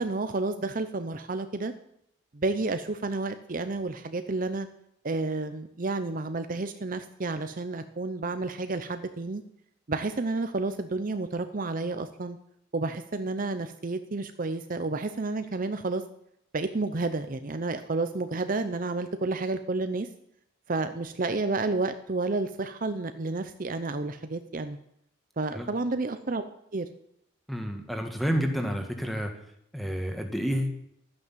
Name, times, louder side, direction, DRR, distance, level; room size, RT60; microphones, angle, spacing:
voice 1, 0.0-1.7 2.3-4.7 5.0-9.4 9.9-12.4 12.7-16.0 16.5-20.1 20.7-24.8 25.4-26.4 26.7-26.9, right 3 dB, 45° right, 9 dB, 0.7 m, -30 dB
voice 2, 27.5-29.3 29.7-30.7, equal, ahead, 4 dB, 1.7 m, -29 dB
12.0 x 9.7 x 7.4 m, 0.73 s
head